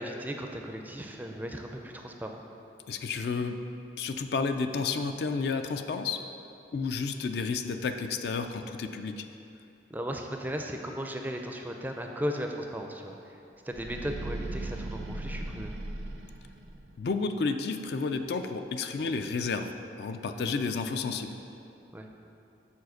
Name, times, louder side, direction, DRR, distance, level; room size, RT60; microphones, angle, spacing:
voice 1, 0.0-2.4 9.9-13.4 13.6-15.7 20.3-20.5 21.9-22.1, equal, 10° right, 3 dB, 0.4 m, -36 dB
voice 2, 2.9-3.6 4.0-6.2 6.7-9.3 17.0-21.3, left 4 dB, 60° left, 7 dB, 0.4 m, -31 dB
sound 1, 13.7-17.0, right 2 dB, 75° right, 0.6 m, -38 dB
7.1 x 4.2 x 6.3 m, 2.7 s
head